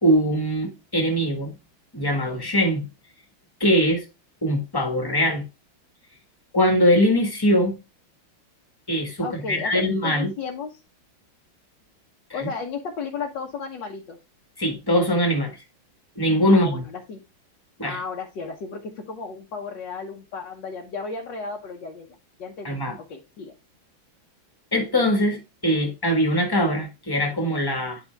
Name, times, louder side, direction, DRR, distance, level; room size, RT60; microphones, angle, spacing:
voice 1, 0.0-1.5 1.9-2.9 3.6-4.0 4.4-5.4 6.5-7.8 8.9-10.3 12.3-12.5 14.6-15.6 16.2-16.8 17.8-18.0 22.6-23.0 24.7-28.0, equal, 10° left, 1.4 m, -22 dB
voice 2, 9.2-10.8 12.3-14.2 16.5-17.2 17.8-22.1 22.4-23.5, left 5 dB, 65° left, 1.7 m, -34 dB
9.8 x 4.9 x 3.4 m
omnidirectional pair, 2.2 m